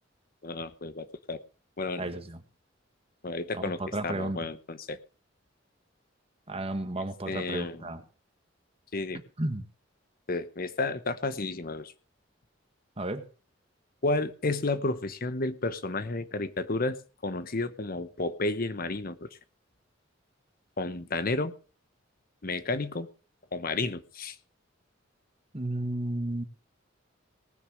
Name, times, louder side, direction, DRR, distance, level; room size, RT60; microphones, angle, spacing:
voice 1, 0.4-1.4 1.8-2.1 3.2-5.0 7.3-7.8 8.9-9.2 10.3-11.9 14.0-17.0 17.2-19.3 20.8-21.5 22.4-23.1 23.5-24.3, left 2 dB, 50° left, 13 dB, 0.9 m, -31 dB
voice 2, 2.0-2.4 3.5-4.4 6.5-8.0 9.4-9.6 13.0-13.3 25.5-26.4, right 1 dB, 30° right, 8 dB, 1.6 m, -33 dB
18.5 x 6.7 x 6.4 m, 0.37 s
head